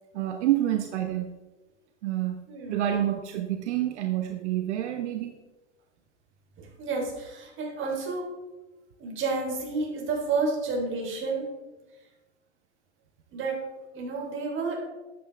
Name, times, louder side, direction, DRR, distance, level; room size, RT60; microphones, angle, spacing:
voice 1, 0.1-1.3 2.0-2.4 2.7-5.4, right 12 dB, 75° right, 5 dB, 1.0 m, -28 dB
voice 2, 2.5-2.8 6.6-8.3 9.0-11.6 13.3-13.6 13.9-14.8, right 3 dB, 35° right, 0 dB, 3.5 m, -30 dB
12.0 x 8.8 x 3.5 m, 1.1 s
hypercardioid pair, 120°, 35 cm